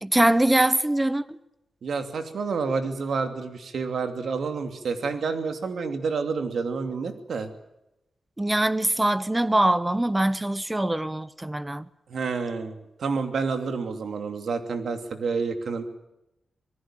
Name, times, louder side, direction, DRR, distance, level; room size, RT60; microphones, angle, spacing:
voice 1, 0.0-1.4 8.4-11.9, right 1 dB, 10° right, 0.8 m, -23 dB
voice 2, 1.8-7.5 12.1-15.9, right 4 dB, 65° right, 2.7 m, -29 dB
26.5 x 19.0 x 7.5 m
wide cardioid pair, 165°, 0 cm